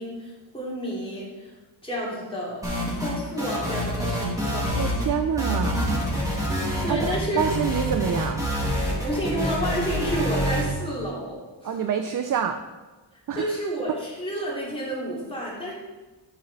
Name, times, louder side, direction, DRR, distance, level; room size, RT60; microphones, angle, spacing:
voice 1, 0.0-1.5 1.8-2.6 2.9-5.0 6.8-7.4 9.0-11.8 13.1-15.7, equal, 10° left, -6 dB, 2.5 m, -30 dB
sound 1, 2.6-3.1 3.4-5.1 5.4-10.6, equal, 5° right, 2.1 m, -26 dB
voice 2, 4.8-5.9 6.9-8.5 11.6-12.6 13.3-13.6, right 7 dB, 45° right, 8 dB, 0.4 m, -27 dB
8.4 x 6.4 x 4.0 m, 1.2 s
wide cardioid pair, 145°, 46 cm